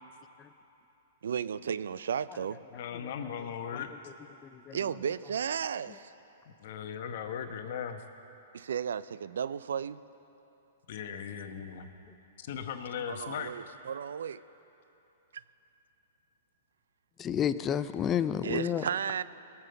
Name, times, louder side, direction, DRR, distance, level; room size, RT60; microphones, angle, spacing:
voice 1, 1.2-2.6 4.7-6.1 8.5-10.0 13.1-14.4 15.3-15.4 18.4-19.2, right 7 dB, 80° right, 17 dB, 0.4 m, -34 dB
voice 2, 2.7-4.1 6.6-8.0 10.9-11.9 12.4-13.5, left 8 dB, 60° left, 7 dB, 1.0 m, -38 dB
voice 3, 4.4-4.8 17.2-18.8, left 9 dB, 20° left, 12 dB, 0.4 m, -31 dB
19.5 x 7.1 x 6.8 m, 2.9 s
hypercardioid pair, 145°, 0 cm